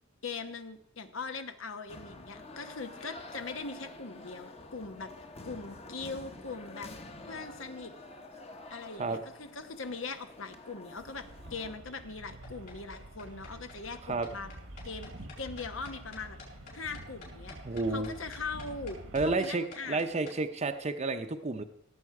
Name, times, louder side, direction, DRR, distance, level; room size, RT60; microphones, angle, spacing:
voice 1, 0.2-5.1 5.4-6.9 7.2-7.9 8.7-14.5 14.8-16.4 16.7-17.6 17.9-20.3, left 4 dB, 80° left, 8 dB, 1.1 m, -41 dB
sound 1, 1.9-11.7, left 2 dB, 30° left, 1.0 m, -48 dB
sound 2, 11.0-19.4, right 1 dB, 85° right, 1.5 m, -47 dB
sound 3, 12.4-20.4, left 4 dB, 55° left, 5.9 m, -50 dB
voice 2, 17.6-18.1 19.1-21.6, right 3 dB, 35° right, 7 dB, 0.6 m, -31 dB
17.5 x 8.0 x 4.8 m, 0.73 s
head